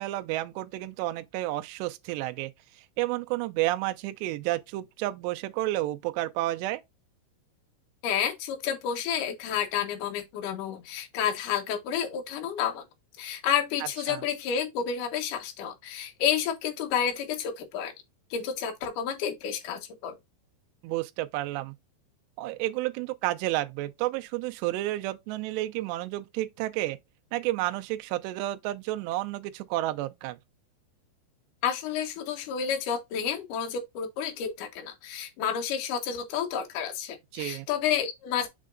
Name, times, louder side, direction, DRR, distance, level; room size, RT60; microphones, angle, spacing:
voice 1, 0.0-2.5 2.8-6.8 14.1-14.2 20.8-21.8 22.4-27.0 27.3-30.4 37.3-37.7, right 16 dB, 85° right, 2.4 m, -31 dB
voice 2, 8.0-12.8 13.2-17.9 18.3-20.2 31.6-38.5, left 8 dB, 75° left, 1.9 m, -30 dB
6.6 x 6.2 x 2.5 m
omnidirectional pair, 5.8 m